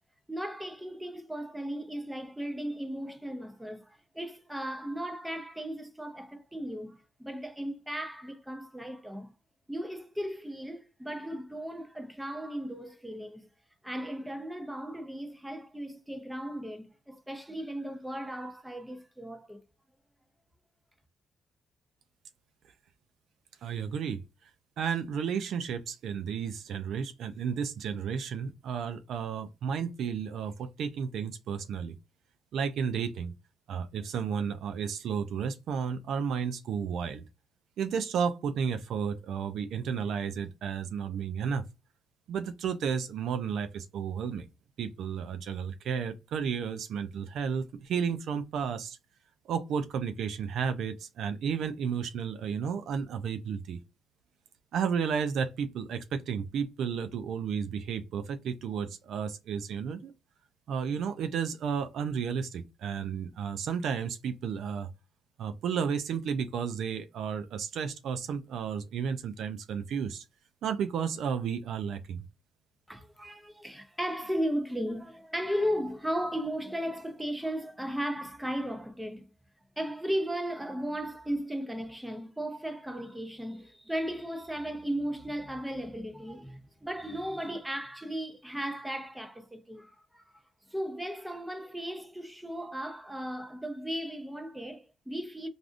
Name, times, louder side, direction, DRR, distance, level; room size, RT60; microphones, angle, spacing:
voice 1, 0.3-9.3 9.7-13.5 13.8-19.6 72.9-79.3 79.8-90.2 90.7-95.5, equal, 5° right, 0.6 m, -36 dB
voice 2, 23.6-24.2 24.8-32.0 32.5-33.3 33.7-37.2 37.8-41.7 42.3-44.5 44.8-49.0 49.5-53.8 54.7-60.1 60.7-64.9 65.4-70.2 70.6-72.2, right 7 dB, 75° right, 0.4 m, -32 dB
3.3 x 2.5 x 2.5 m
cardioid pair, 90°, 0 cm